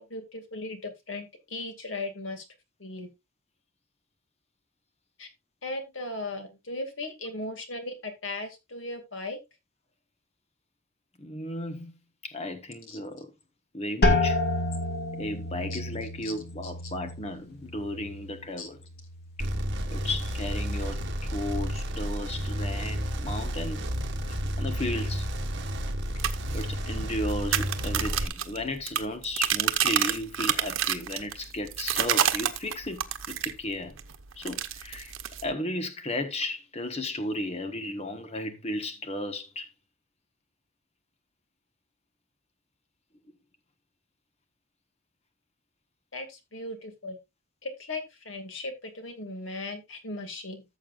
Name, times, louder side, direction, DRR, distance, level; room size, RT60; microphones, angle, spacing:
voice 1, 0.0-2.4 2.8-3.1 5.2-5.3 5.6-9.4 12.9-13.0 15.7-15.8 16.2-16.3 18.6-18.7 46.1-47.2 47.6-50.6, left 2 dB, 75° left, 2.3 m, -37 dB
voice 2, 11.2-12.0 12.2-13.3 13.7-14.4 15.2-18.8 19.4-19.5 19.9-23.8 24.2-25.3 26.1-26.3 26.5-34.0 34.4-35.1 35.4-39.7, left 1 dB, 30° left, 1.3 m, -34 dB
sound 1, 14.0-19.7 20.0-20.7 21.2-21.6, left 2 dB, 50° left, 2.0 m, -30 dB
sound 2, 19.4-28.3, equal, 60° right, 1.6 m, -31 dB
sound 3, 26.1-33.6 34.0-35.5, right 10 dB, 90° right, 1.0 m, -29 dB
14.0 x 7.2 x 2.5 m
head